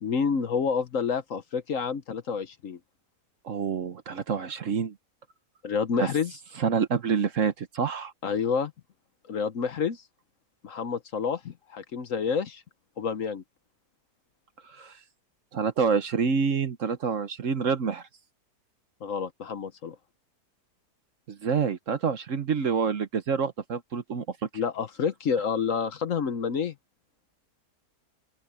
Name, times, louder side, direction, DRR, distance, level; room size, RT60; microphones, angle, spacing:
voice 1, 0.0-2.8 5.6-6.4 8.2-8.7 9.3-10.0 10.6-12.6 13.0-13.4 19.0-19.9 24.5-26.7, left 6 dB, 55° left, 1.2 m, -29 dB
voice 2, 3.4-4.9 6.0-6.1 6.6-8.1 14.6-15.0 15.5-18.0 21.3-24.4, right 6 dB, 55° right, 1.3 m, -27 dB
open air
omnidirectional pair, 1.7 m